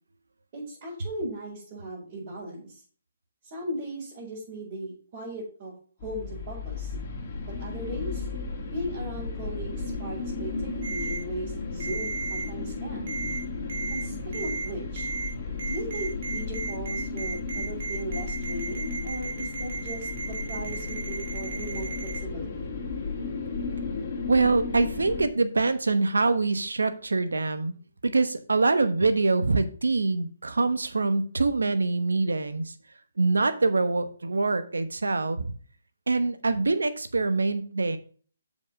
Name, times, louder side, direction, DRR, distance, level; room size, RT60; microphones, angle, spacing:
voice 1, 0.5-2.8 3.5-5.7 6.0-6.9 7.6-8.3 8.6-13.1 13.9-15.1 15.6-22.7, right 1 dB, 35° right, -7 dB, 4.8 m, -37 dB
sound 1, 6.0-25.3, left 4 dB, 40° left, 2.1 m, -34 dB
Ringtone, 10.8-11.2 11.8-12.4 13.1-13.4 13.7-14.0 14.3-14.7 15.0-15.3 15.6-22.2, right 3 dB, 55° right, 2.8 m, -34 dB
voice 2, 24.3-27.7 28.0-32.7 33.2-35.5 36.1-38.0, right 3 dB, 85° right, 11 dB, 1.0 m, -24 dB
7.3 x 5.2 x 5.2 m, 0.43 s
hypercardioid pair, 145°, 0 cm